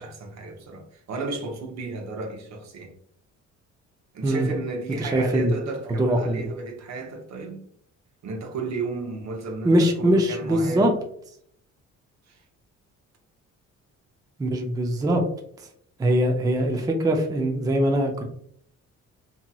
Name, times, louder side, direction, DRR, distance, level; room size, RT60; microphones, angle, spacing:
voice 1, 0.0-2.9 4.1-7.6 8.2-11.0 12.3-12.4, right 3 dB, 65° right, 0.8 m, -33 dB
voice 2, 5.0-5.5 6.0-6.4 9.6-10.9 14.4-15.2 16.0-18.2, right 1 dB, 10° right, 0.4 m, -22 dB
2.8 x 2.7 x 2.2 m
cardioid pair, 90°, 30 cm